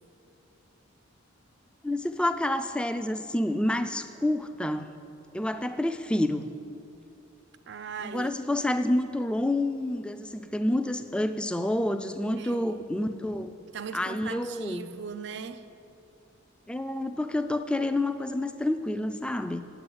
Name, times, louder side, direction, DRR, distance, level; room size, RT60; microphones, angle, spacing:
voice 1, 1.8-5.0 5.3-6.5 8.0-13.5 13.9-14.9 16.7-19.6, left 1 dB, 5° left, 0.3 m, -28 dB
voice 2, 7.7-8.3 12.4-12.8 13.7-15.7, right 6 dB, 55° right, 0.4 m, -39 dB
9.2 x 7.7 x 7.9 m
head